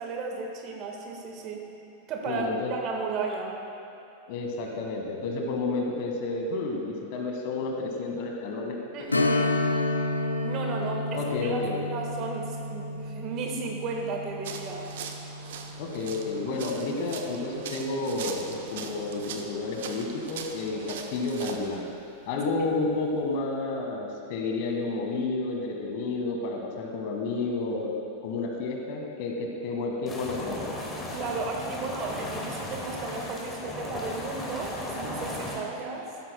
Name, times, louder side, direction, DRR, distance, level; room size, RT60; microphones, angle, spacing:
voice 1, 0.0-1.7 2.1-3.6 8.9-9.6 10.4-14.9 28.5-28.6 31.1-36.1, right 4 dB, 35° right, 1 dB, 1.4 m, -34 dB
voice 2, 2.3-2.7 4.3-8.8 9.6-9.7 11.1-11.8 15.8-21.9 22.3-27.9 28.2-30.7, left 3 dB, 45° left, 1 dB, 1.5 m, -31 dB
Strum, 9.1-18.3 18.6-18.7 21.3-21.4 21.9-22.0, left 2 dB, 80° left, 0.5 m, -31 dB
sound 1, 14.4-21.8, right 6 dB, 55° right, 0.7 m, -41 dB
sound 2, 30.1-35.6, left 1 dB, 15° left, 1.9 m, -36 dB
15.0 x 12.5 x 2.2 m, 2.9 s
figure-of-eight pair, 90°, 0 cm